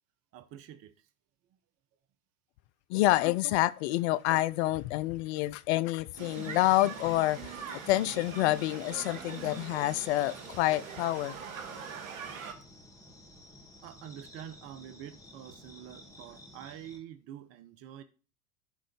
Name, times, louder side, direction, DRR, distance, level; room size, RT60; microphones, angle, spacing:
voice 1, 0.3-1.1 13.8-18.0, right 10 dB, 35° right, 0.8 m, -47 dB
voice 2, 2.9-7.5 7.9-11.3, left 17 dB, 50° left, 0.5 m, -28 dB
sound 1, 6.1-17.0, left 1 dB, 5° left, 2.1 m, -53 dB
sound 2, 6.2-12.5, right 6 dB, 65° right, 1.8 m, -43 dB
11.5 x 3.8 x 5.1 m
hypercardioid pair, 90°, 43 cm